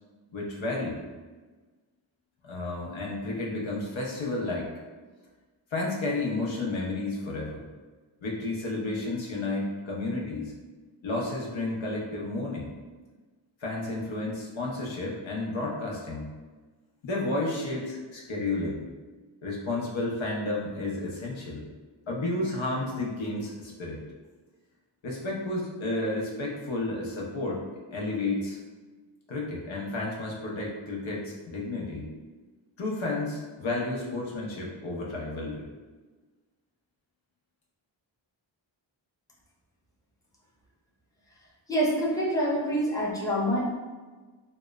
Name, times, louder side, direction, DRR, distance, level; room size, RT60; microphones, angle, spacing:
voice 1, 0.3-1.0 2.4-4.7 5.7-7.7 8.2-10.5 11.0-12.7 13.6-16.3 17.0-18.8 19.4-21.7 22.1-24.0 25.0-27.6 27.9-28.6 29.3-32.1 32.8-35.6, left 2 dB, 80° left, -3 dB, 0.6 m, -31 dB
voice 2, 41.7-43.6, equal, 5° left, -5 dB, 0.6 m, -26 dB
2.9 x 2.0 x 2.2 m, 1.3 s
cardioid pair, 55°, 47 cm